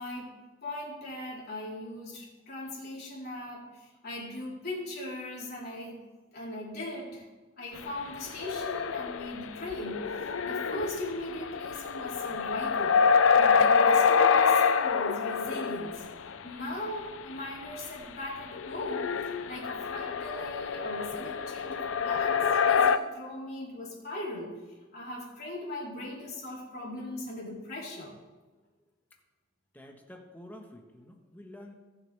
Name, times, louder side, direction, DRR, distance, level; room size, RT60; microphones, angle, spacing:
voice 1, 0.0-6.0 6.3-7.2 7.6-13.0 13.4-16.0 16.4-24.5 24.9-28.1, left 1 dB, 50° left, -6 dB, 4.1 m, -39 dB
sound 1, 7.8-7.9 8.3-16.3 18.5-23.0, left 6 dB, 80° left, 0.6 m, -26 dB
voice 2, 29.7-31.7, left 1 dB, 10° left, 2 dB, 1.4 m, -48 dB
20.0 x 6.8 x 3.5 m, 1.3 s
head